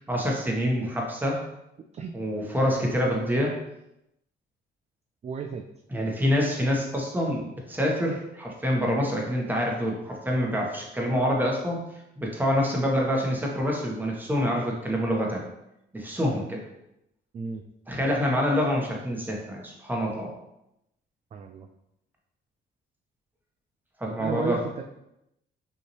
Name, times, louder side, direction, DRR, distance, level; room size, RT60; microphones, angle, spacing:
voice 1, 0.0-1.4 2.1-3.5 5.9-11.8 12.2-15.4 15.9-16.6 17.9-20.3 24.0-24.6, equal, 10° right, -2 dB, 1.2 m, -26 dB
voice 2, 5.2-5.6 17.3-17.6 21.3-21.7 24.2-24.8, right 5 dB, 35° right, 5 dB, 0.3 m, -33 dB
5.6 x 2.8 x 3.1 m, 0.85 s
cardioid pair, 90°, 20 cm